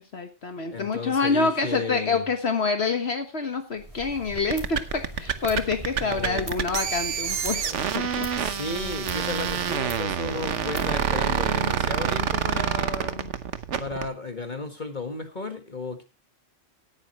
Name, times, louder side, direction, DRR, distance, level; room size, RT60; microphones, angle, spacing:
voice 1, 0.0-7.6 7.9-8.3, left 4 dB, 60° left, 6 dB, 1.6 m, -27 dB
voice 2, 0.7-2.2 6.0-6.5 8.3-13.3 13.8-16.0, left 3 dB, 40° left, 6 dB, 1.8 m, -34 dB
sound 1, 3.8-11.7, right 1 dB, 30° right, 2.8 m, -41 dB
sound 2, 4.4-14.1, right 8 dB, 80° right, 1.3 m, -27 dB
17.0 x 9.4 x 3.0 m, 0.30 s
omnidirectional pair, 1.2 m